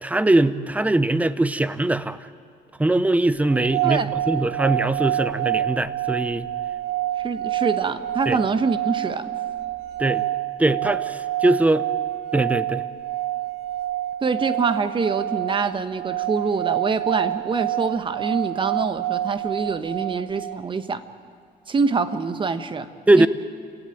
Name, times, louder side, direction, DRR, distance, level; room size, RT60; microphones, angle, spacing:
voice 1, 0.0-2.2 2.8-6.5 8.3-8.4 10.0-10.3 10.6-11.8 12.3-12.8 23.1-23.3, right 2 dB, 10° right, 14 dB, 0.8 m, -21 dB
sound 1, 3.4-20.6, right 13 dB, 75° right, 2.1 m, -27 dB
voice 2, 3.8-4.1 7.2-9.3 14.2-21.0 21.7-22.9 23.1-23.3, right 4 dB, 30° right, 11 dB, 1.3 m, -25 dB
28.5 x 16.5 x 9.2 m, 2.1 s
cardioid pair, 110°, 17 cm